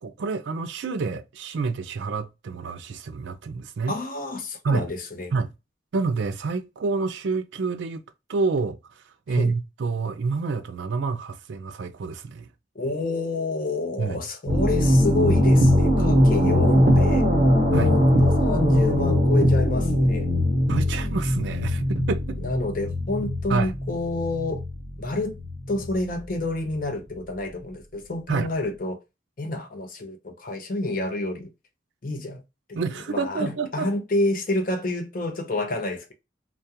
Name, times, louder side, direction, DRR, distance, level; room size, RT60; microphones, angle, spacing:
voice 1, 0.0-3.9 4.6-4.9 5.3-5.5 5.9-8.0 8.3-12.5 14.0-14.2 17.7-17.9 20.7-22.4 23.5-23.8 28.3-28.5 32.8-33.9, right 4 dB, 65° right, 0.4 m, -28 dB
voice 2, 3.9-5.3 9.3-9.5 12.7-17.2 17.7-20.3 22.4-24.6 25.0-25.4 25.7-29.0 29.4-31.5 32.0-32.4 32.7-32.8 33.1-36.1, left 2 dB, 45° left, 0.6 m, -28 dB
sound 1, 14.5-26.0, equal, 40° right, 0.9 m, -21 dB
2.3 x 2.2 x 2.7 m
head